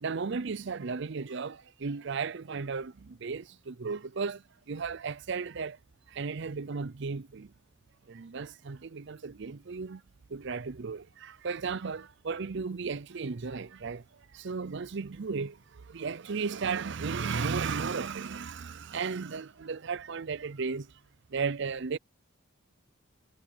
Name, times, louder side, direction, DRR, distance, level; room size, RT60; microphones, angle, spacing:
voice 1, 0.0-5.8 6.1-7.5 8.1-10.0 10.3-20.9 21.3-22.0, right 5 dB, 60° right, 0.6 m, -35 dB
head